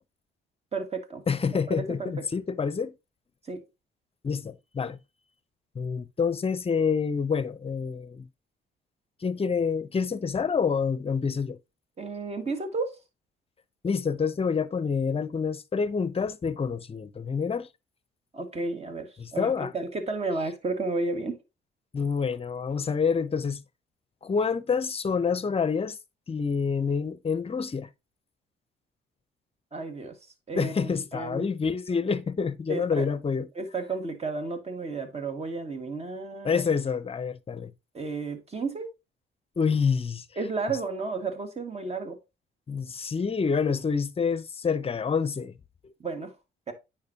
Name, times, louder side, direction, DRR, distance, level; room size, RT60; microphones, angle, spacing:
voice 1, 0.7-1.2 1.5-2.1 3.5-3.6 12.0-13.0 18.3-21.4 29.7-30.2 30.5-31.5 32.7-33.1 33.6-36.6 37.9-38.9 40.4-42.2 46.0-46.3 46.7-46.8, right 3 dB, 30° right, 1.8 m, -32 dB
voice 2, 1.3-2.9 4.2-5.0 5.7-8.3 9.2-11.6 13.8-17.7 19.2-19.7 21.9-23.6 24.2-26.0 26.3-27.9 30.5-33.5 36.4-37.7 39.6-40.2 42.7-45.5 45.8-45.9, left 5 dB, 30° left, 0.7 m, -27 dB
9.4 x 5.2 x 2.8 m
cardioid pair, 90°, 20 cm